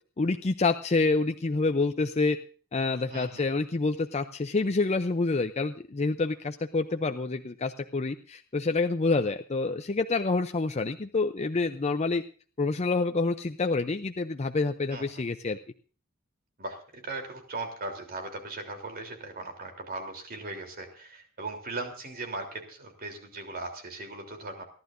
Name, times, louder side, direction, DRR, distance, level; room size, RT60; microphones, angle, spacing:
voice 1, 0.2-2.4 2.7-12.2 12.6-15.6, left 3 dB, 30° left, 7 dB, 0.5 m, -27 dB
voice 2, 3.1-3.4 14.9-15.0 16.6-24.6, right 2 dB, 45° right, 4 dB, 3.4 m, -38 dB
28.5 x 11.5 x 2.6 m, 0.41 s
head